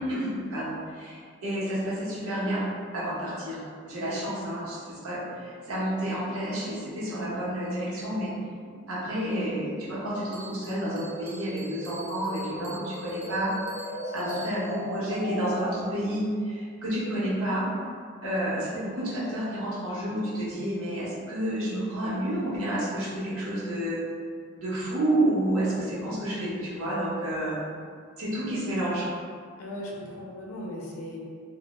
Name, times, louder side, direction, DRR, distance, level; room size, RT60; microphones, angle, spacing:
voice 1, 0.0-8.3 8.9-13.6 14.1-17.7 18.2-24.0 24.6-27.6 28.2-29.1, right 1 dB, 80° right, -7 dB, 0.7 m, -30 dB
sound 1, 5.2-16.2, equal, 25° left, 0.4 m, -41 dB
Bell, 10.3-14.8, right 1 dB, 45° right, 0.4 m, -47 dB
voice 2, 14.0-14.4 28.5-28.8 29.6-31.2, left 1 dB, 85° left, -3 dB, 0.4 m, -39 dB
2.1 x 2.0 x 2.9 m, 2.1 s
head